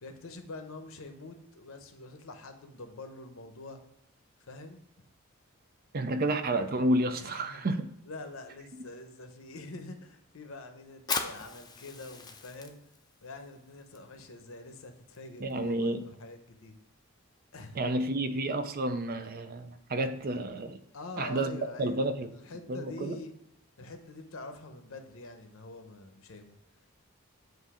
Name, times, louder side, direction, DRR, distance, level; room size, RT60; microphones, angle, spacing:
voice 1, 0.0-3.8 4.4-4.8 7.1-7.7 8.0-12.8 13.2-16.8 17.5-17.8 20.9-22.1 22.3-23.3 23.8-26.6, left 2 dB, 70° left, 7 dB, 0.8 m, -45 dB
voice 2, 5.9-7.9 15.4-16.0 17.8-20.8 21.2-22.3 22.7-23.2, right 1 dB, 40° right, 9 dB, 0.5 m, -30 dB
Fire, 10.9-18.2, left 5 dB, 20° left, 0.5 m, -42 dB
7.9 x 2.6 x 4.8 m, 0.83 s
head